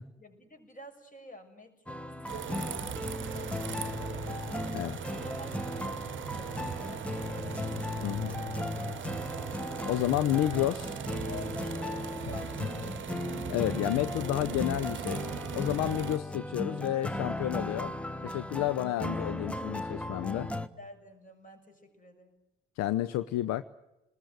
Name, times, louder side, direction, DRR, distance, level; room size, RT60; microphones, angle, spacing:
voice 1, 0.0-4.8 5.1-8.6 8.8-9.4 9.9-10.4 11.1-13.6 14.1-14.5 20.6-22.4, left 1 dB, 25° left, 7 dB, 6.3 m, -51 dB
sound 1, 1.9-20.7, left 1 dB, 5° left, 1.3 m, -37 dB
sound 2, 2.3-16.2, right 8 dB, 40° right, 1.2 m, -39 dB
voice 2, 8.0-8.3 9.9-10.9 13.5-17.9 18.2-20.5 22.8-23.6, left 14 dB, 55° left, 15 dB, 0.8 m, -30 dB
28.0 x 20.5 x 8.1 m, 0.97 s
figure-of-eight pair, 50°, 31 cm